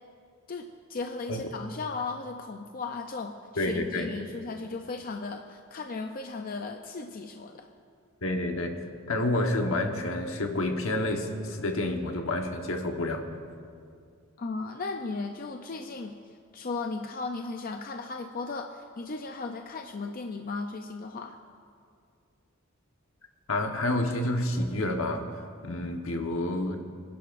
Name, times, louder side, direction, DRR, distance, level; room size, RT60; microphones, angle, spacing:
voice 1, 0.5-7.7 14.4-16.2 16.5-21.4, left 3 dB, 45° left, 5 dB, 0.5 m, -36 dB
voice 2, 3.6-4.1 8.2-13.2 23.5-26.8, left 1 dB, 75° left, 3 dB, 1.2 m, -29 dB
25.5 x 11.0 x 2.5 m, 2.3 s
head